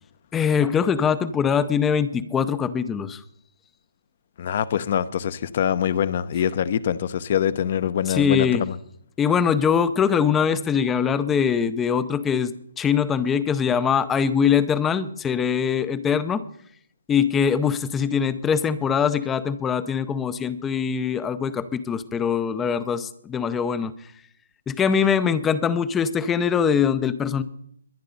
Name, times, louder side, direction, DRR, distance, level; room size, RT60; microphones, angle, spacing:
voice 1, 0.3-3.2 8.1-8.7 9.2-16.4 17.1-23.9 24.7-27.4, left 7 dB, 10° left, 0.6 m, -22 dB
voice 2, 4.4-8.7, left 9 dB, 45° left, 0.8 m, -24 dB
22.0 x 9.6 x 4.0 m
hypercardioid pair, 160°, 0 cm